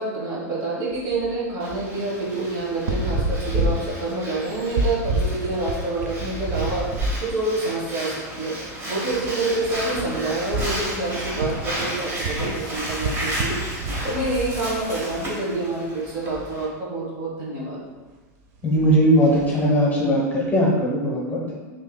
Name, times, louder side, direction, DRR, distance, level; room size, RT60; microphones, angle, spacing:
voice 1, 0.0-6.9 7.2-8.6 8.9-13.6 14.0-17.8, right 2 dB, 50° right, -4 dB, 1.3 m, -27 dB
sound 1, 0.9-1.3 1.7-1.9 2.7-7.3 7.6-7.8 8.6-8.7 9.0-15.3 16.1-16.5 18.6-19.7, right 1 dB, 65° right, 0.6 m, -29 dB
Breathing, 1.6-16.6, right 1 dB, 25° right, 1.0 m, -33 dB
voice 2, 18.6-21.7, equal, 15° left, -4 dB, 0.9 m, -19 dB
5.3 x 2.9 x 2.2 m, 1.3 s
supercardioid pair, 130°, 9 cm